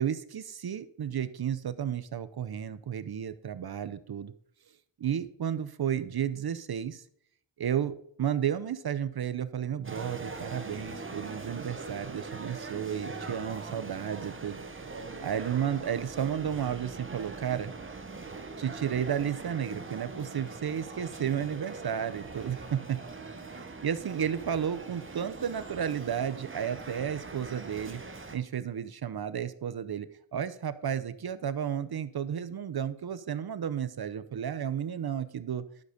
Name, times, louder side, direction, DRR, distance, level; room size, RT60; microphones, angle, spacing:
voice 1, 0.0-4.3 5.0-7.0 7.6-14.6 15.2-17.7 18.6-23.0 23.8-28.0 28.3-35.6, right 9 dB, 60° right, 14 dB, 0.7 m, -32 dB
sound 1, 9.8-28.4, right 3 dB, 30° right, 1.2 m, -42 dB
Trumpet, 20.1-25.2, left 6 dB, 80° left, 1.5 m, -59 dB
12.0 x 6.5 x 5.0 m, 0.65 s
wide cardioid pair, 100°, 44 cm